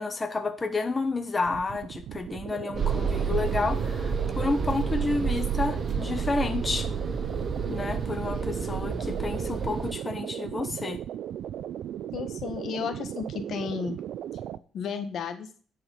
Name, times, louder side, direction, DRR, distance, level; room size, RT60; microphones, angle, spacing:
voice 1, 0.0-6.9 7.7-11.0, left 3 dB, 25° left, 7 dB, 1.1 m, -30 dB
sound 1, 1.4-14.6, right 10 dB, 75° right, 0.4 m, -37 dB
sound 2, 2.8-9.9, right 6 dB, 40° right, 1.3 m, -29 dB
voice 2, 12.1-14.0 14.7-15.5, left 6 dB, 65° left, 8 dB, 1.3 m, -33 dB
10.0 x 4.9 x 5.4 m, 0.42 s
cardioid pair, 90°, 0 cm